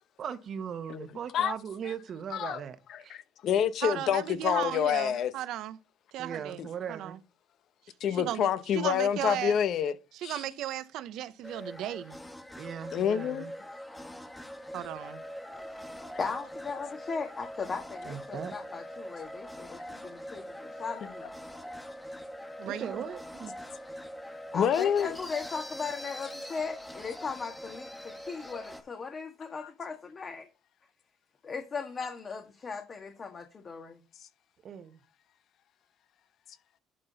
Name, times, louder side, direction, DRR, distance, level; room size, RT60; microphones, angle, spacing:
voice 1, 0.2-2.8 3.0-3.2 6.2-7.2 12.6-13.5 18.0-18.5 22.7-23.5 34.6-35.0, right 7 dB, 55° right, 1.2 m, -39 dB
voice 2, 2.3-2.6 2.9-5.3 6.6-6.7 8.0-9.9 10.2-10.4 12.9-13.4 24.5-25.2, left 9 dB, 65° left, 0.8 m, -27 dB
voice 3, 3.8-5.8 6.1-6.6 6.9-7.2 8.1-9.6 10.1-12.2 14.7-15.2 22.6-23.0, right 13 dB, 70° right, 0.7 m, -36 dB
sound 1, 11.4-28.8, equal, 10° left, 1.6 m, -43 dB
voice 4, 16.2-21.3 24.5-30.5 31.4-34.0, left 5 dB, 40° left, 1.5 m, -38 dB
11.5 x 3.9 x 4.0 m
supercardioid pair, 65°, 0 cm